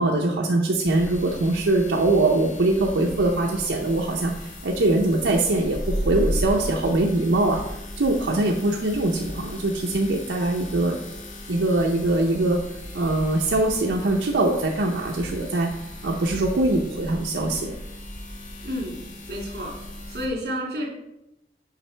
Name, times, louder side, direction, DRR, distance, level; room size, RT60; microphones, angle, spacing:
voice 1, 0.0-7.6 8.0-11.0 11.5-12.6 12.9-15.7 16.0-17.8, right 2 dB, 90° right, 0 dB, 0.6 m, -22 dB
sound 1, 0.9-20.3, equal, 45° left, 0.9 m, -36 dB
voice 2, 18.6-19.8 20.1-20.9, equal, 60° right, -2 dB, 2.2 m, -31 dB
7.3 x 5.1 x 3.3 m, 0.90 s
head